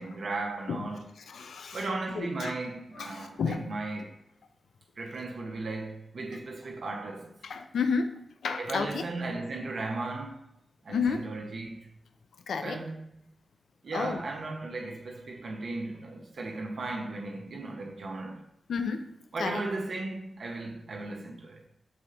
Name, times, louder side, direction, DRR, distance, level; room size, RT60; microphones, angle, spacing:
voice 1, 0.0-1.1 1.7-4.1 5.0-7.4 8.6-10.4 10.8-11.9 12.6-13.2 13.8-18.4 19.3-21.6, right 2 dB, 70° right, 0.8 m, -36 dB
voice 2, 1.2-2.5 3.0-3.7 7.4-9.0 10.9-11.3 12.5-12.8 13.9-14.2 18.7-19.1 19.4-19.6, left 5 dB, 85° left, 0.5 m, -31 dB
6.2 x 4.2 x 3.9 m
cardioid pair, 40°, 0 cm